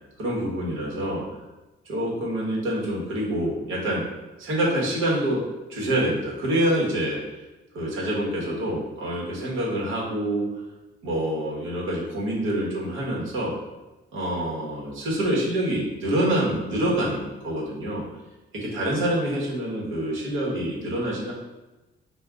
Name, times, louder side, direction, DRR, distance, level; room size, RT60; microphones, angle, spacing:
voice 1, 0.2-1.2 1.9-4.0 4.4-5.4 5.7-7.2 7.7-10.5 11.0-13.5 14.1-18.0 18.5-21.3, right 1 dB, 90° right, -4 dB, 1.2 m, -26 dB
3.8 x 2.5 x 3.5 m, 1.1 s
cardioid pair, 90°, 20 cm